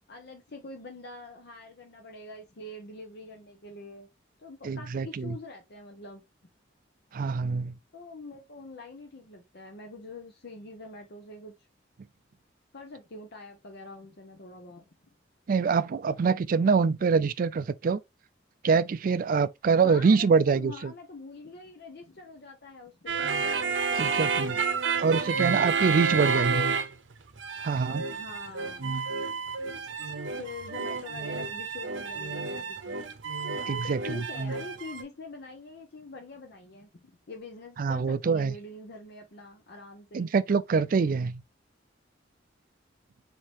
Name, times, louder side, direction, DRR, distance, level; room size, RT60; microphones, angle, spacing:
voice 1, 0.1-4.1 4.4-6.2 7.9-11.5 12.7-14.9 17.0-17.3 19.8-24.6 26.1-26.8 28.1-29.0 30.0-33.1 33.6-40.3, left 3 dB, 60° left, 0.8 m, -44 dB
voice 2, 4.6-5.3 7.1-7.7 15.5-18.0 18.6-20.9 24.0-24.5 25.0-26.6 27.6-28.0 33.7-34.2 37.8-38.5 40.1-41.4, right 5 dB, 45° right, 0.3 m, -25 dB
sound 1, 23.1-27.1 27.4-35.0, right 5 dB, 75° right, 0.7 m, -30 dB
4.5 x 2.8 x 3.0 m
head